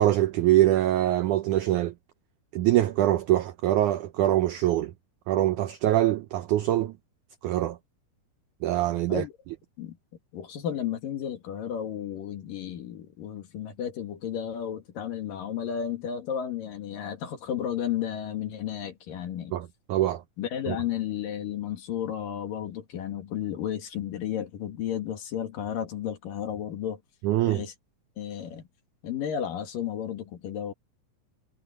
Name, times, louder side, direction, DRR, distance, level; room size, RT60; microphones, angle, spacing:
voice 1, 0.0-1.9 2.5-4.9 5.3-6.9 7.4-7.8 8.6-9.2 19.5-20.2 20.7-20.8 27.2-27.6, right 14 dB, 85° right, 1.7 m, -24 dB
voice 2, 10.3-19.5 20.4-27.0 27.5-27.7 28.2-28.6 29.0-30.7, left 9 dB, 65° left, 3.6 m, -33 dB
omnidirectional pair, 4.5 m